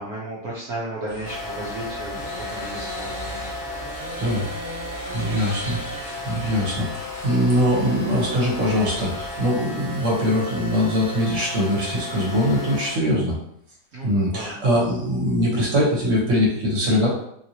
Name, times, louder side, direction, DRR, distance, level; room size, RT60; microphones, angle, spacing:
voice 1, 0.0-3.4 13.9-14.6, right 1 dB, 70° right, -7 dB, 1.2 m, -34 dB
sound 1, 1.1-9.5, left 1 dB, 30° right, 1.2 m, -37 dB
sound 2, 1.3-12.9, left 1 dB, 80° left, 1.3 m, -35 dB
voice 2, 5.1-13.4 14.0-17.1, equal, 55° right, -4 dB, 1.4 m, -22 dB
3.0 x 2.8 x 2.8 m, 0.71 s
omnidirectional pair, 1.7 m